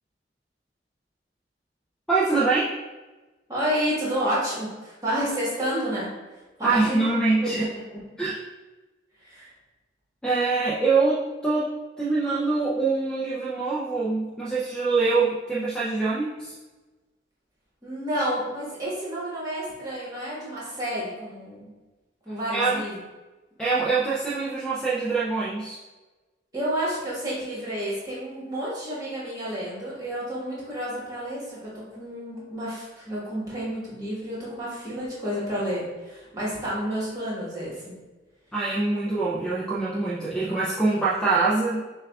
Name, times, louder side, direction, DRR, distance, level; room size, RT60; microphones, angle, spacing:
voice 1, 2.1-2.7 6.6-7.7 8.2-8.4 10.2-16.5 22.5-22.8 23.6-25.8 38.5-41.8, right 3 dB, 5° left, -6 dB, 0.4 m, -24 dB
voice 2, 3.5-6.1 6.6-7.1 7.4-7.5 7.9-8.0 9.2-9.5 17.8-21.7 22.2-23.0 26.5-37.8, equal, 20° right, -7 dB, 1.3 m, -30 dB
6.7 x 2.3 x 2.3 m, 1.2 s
head